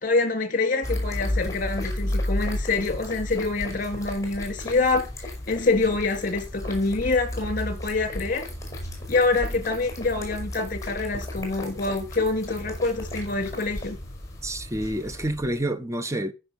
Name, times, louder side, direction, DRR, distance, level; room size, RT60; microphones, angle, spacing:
voice 1, 0.0-5.1 5.5-8.5 9.1-14.0, left 3 dB, 40° left, 3.2 m, -26 dB
sound 1, 0.8-15.6, left 1 dB, 15° left, 5.1 m, -33 dB
voice 2, 14.4-16.3, right 1 dB, 15° right, 0.9 m, -28 dB
14.5 x 6.4 x 5.5 m
head